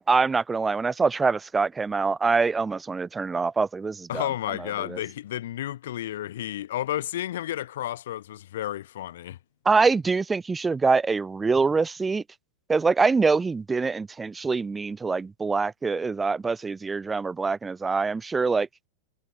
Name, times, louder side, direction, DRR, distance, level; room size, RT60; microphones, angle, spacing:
voice 1, 0.0-4.3 4.9-5.0 9.7-12.2 12.7-18.7, right 4 dB, 15° right, 1.7 m, -24 dB
voice 2, 4.1-9.4, left 12 dB, 60° left, 8.0 m, -32 dB
figure-of-eight pair, 90°, 0 cm